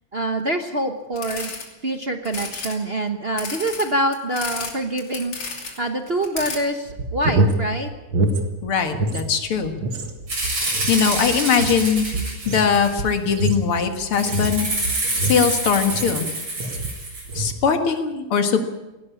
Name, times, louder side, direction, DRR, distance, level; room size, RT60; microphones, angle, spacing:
voice 1, 0.1-1.5 1.8-7.9, right 1 dB, 35° right, 5 dB, 1.0 m, -25 dB
sound 1, 1.2-1.7 2.2-2.7 3.4-4.7 5.0-5.8 6.1-6.6, left 4 dB, 60° left, 3.6 m, -32 dB
sound 2, 6.9-9.3 9.6-16.3 16.6-17.0 17.3-17.6, right 2 dB, 65° right, 2.6 m, -26 dB
voice 2, 8.6-9.7 10.6-12.1 12.5-14.7 15.2-16.3 17.3-18.6, left 6 dB, 80° left, 6 dB, 2.7 m, -21 dB
Rattle (instrument), 10.3-13.1 14.1-17.3, right 2 dB, 90° right, 8.1 m, -27 dB
18.5 x 17.0 x 8.5 m, 1.1 s
omnidirectional pair, 2.4 m